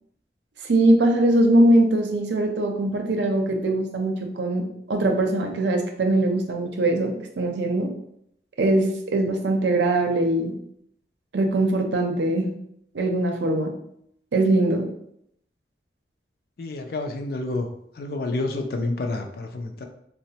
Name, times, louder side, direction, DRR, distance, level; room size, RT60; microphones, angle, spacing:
voice 1, 0.7-7.9 8.6-10.5 11.3-12.5 12.9-13.7 14.3-14.9, right 1 dB, 80° right, 3 dB, 0.5 m, -21 dB
voice 2, 16.6-17.7 18.0-19.9, left 2 dB, 55° left, 4 dB, 0.4 m, -29 dB
4.0 x 2.0 x 2.8 m, 0.73 s
head